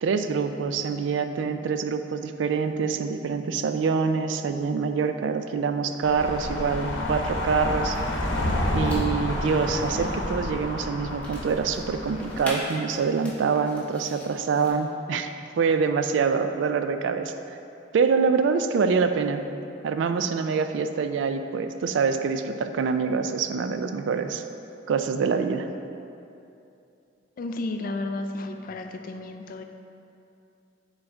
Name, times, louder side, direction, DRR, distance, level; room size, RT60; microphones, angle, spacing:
voice 1, 0.0-8.0 8.7-17.3 17.9-19.5 19.8-24.4 24.9-25.7, right 5 dB, 70° right, 8 dB, 0.3 m, -25 dB
sound 1, 6.0-12.5, left 1 dB, 85° left, 0.8 m, -29 dB
sound 2, 6.0-14.7, equal, 10° left, 1.0 m, -43 dB
voice 2, 27.4-29.6, left 2 dB, 50° left, 6 dB, 0.3 m, -33 dB
6.6 x 4.0 x 3.5 m, 2.7 s
head